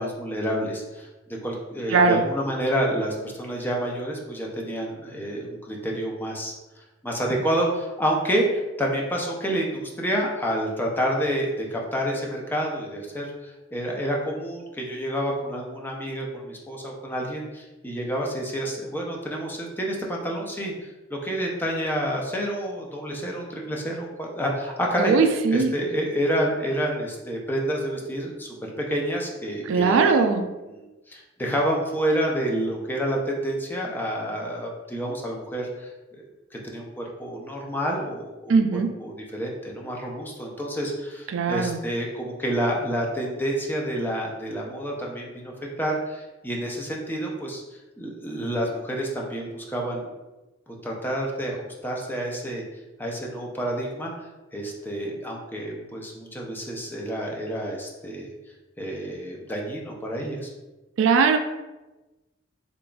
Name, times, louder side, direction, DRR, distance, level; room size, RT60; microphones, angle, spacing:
voice 1, 0.0-6.5 7.0-20.9 21.2-30.3 30.6-35.9 36.7-47.6 48.0-50.1 50.8-52.6 53.0-54.1 54.5-58.3 58.8-60.5, equal, 10° left, -1 dB, 0.5 m, -29 dB
voice 2, 25.0-25.7 29.7-30.4 38.5-38.9 41.3-41.8 61.0-61.4, right 5 dB, 70° right, 6 dB, 0.3 m, -19 dB
3.8 x 3.3 x 2.3 m, 1.1 s
head